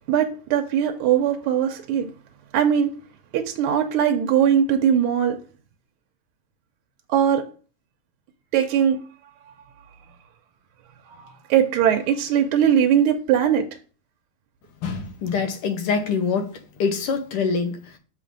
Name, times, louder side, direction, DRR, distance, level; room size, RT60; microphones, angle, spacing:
voice 1, 0.1-2.1 2.5-2.9 3.3-5.4 7.1-7.4 8.5-9.0 11.2-13.6, right 9 dB, 85° right, 1.5 m, -20 dB
voice 2, 14.8-16.5 16.8-17.8, left 5 dB, 85° left, 1.9 m, -24 dB
6.4 x 3.3 x 5.1 m
omnidirectional pair, 2.4 m